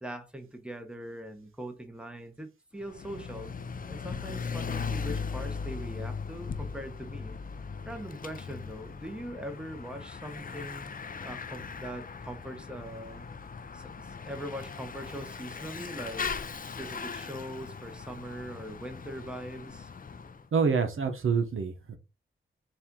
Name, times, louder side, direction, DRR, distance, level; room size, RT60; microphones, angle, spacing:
voice 1, 0.0-3.5 3.9-7.4 7.8-10.9 11.2-13.3 13.7-16.3 16.8-19.9, right 1 dB, 5° right, 1.0 m, -41 dB
Bicycle / Mechanisms, 2.8-20.4, left 5 dB, 40° left, 0.5 m, -39 dB
voice 2, 20.5-22.0, right 5 dB, 75° right, 0.8 m, -27 dB
4.3 x 2.5 x 3.7 m
cardioid pair, 55°, 21 cm